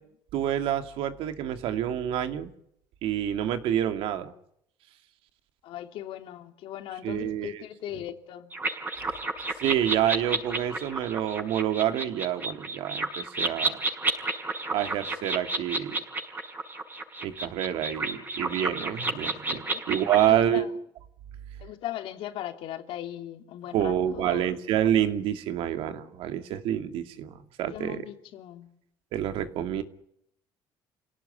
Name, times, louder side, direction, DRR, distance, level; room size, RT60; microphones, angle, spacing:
voice 1, 0.3-2.5 3.0-4.3 7.0-7.6 9.6-13.8 14.7-16.0 17.2-20.7 23.7-28.0 29.1-29.8, right 11 dB, 75° right, 8 dB, 2.5 m, -28 dB
voice 2, 5.6-8.5 19.7-19.9 20.2-20.7 21.6-24.5 27.7-28.7, left 12 dB, 75° left, 6 dB, 3.0 m, -38 dB
sound 1, 8.5-20.3, right 2 dB, 20° right, 5.9 m, -31 dB
28.5 x 18.0 x 9.9 m, 0.73 s
cardioid pair, 120°, 9 cm